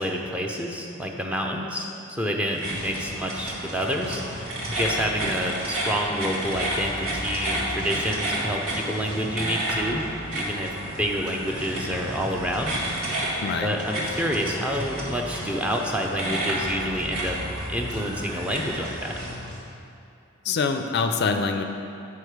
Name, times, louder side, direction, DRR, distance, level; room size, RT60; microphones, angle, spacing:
voice 1, 0.0-4.2 4.7-10.7 11.0-12.8 13.6-17.4 17.7-19.1, equal, 5° right, 0 dB, 0.5 m, -28 dB
sound 1, 2.5-19.3, right 1 dB, 80° right, 1.8 m, -31 dB
sound 2, 2.7-19.7, left 1 dB, 40° right, 1.6 m, -39 dB
voice 2, 13.4-13.8 20.4-21.6, left 4 dB, 55° left, 6 dB, 0.4 m, -25 dB
8.4 x 5.6 x 4.7 m, 2.7 s
head